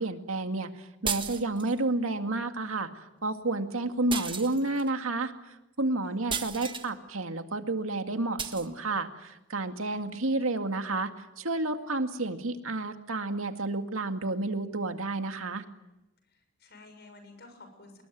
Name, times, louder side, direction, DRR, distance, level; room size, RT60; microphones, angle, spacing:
voice 1, 0.0-5.3 5.8-11.1 11.4-15.6, right 2 dB, 85° right, 6 dB, 2.2 m, -30 dB
sound 1, 1.0-1.8 4.1-4.9 6.3-6.9 8.4-8.7, right 6 dB, 25° right, 1.7 m, -34 dB
voice 2, 6.0-6.6 9.8-10.0 16.3-18.0, left 2 dB, 55° left, 7 dB, 7.0 m, -52 dB
26.0 x 21.5 x 9.4 m, 0.93 s
head